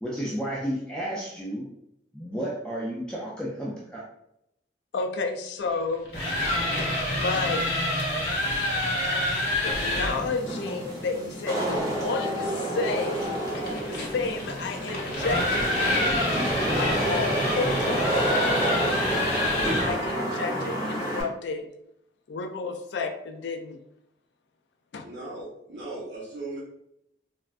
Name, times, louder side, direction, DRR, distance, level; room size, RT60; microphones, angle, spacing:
voice 1, 0.0-1.7 2.1-4.1, equal, 5° left, -6 dB, 0.4 m, -32 dB
voice 2, 4.9-6.1 7.1-7.8 9.6-15.7 16.0-18.9 19.8-21.7 22.3-23.8 24.9-25.1, left 4 dB, 75° left, 7 dB, 0.3 m, -32 dB
sound 1, 5.9-10.2 12.8-20.1, left 1 dB, 55° left, 0.8 m, -27 dB
Wind / Rain, 9.7-21.2, right 1 dB, 20° right, 0.7 m, -29 dB
voice 3, 25.0-26.6, right 2 dB, 80° right, -9 dB, 0.7 m, -37 dB
3.4 x 2.1 x 2.4 m, 0.79 s
head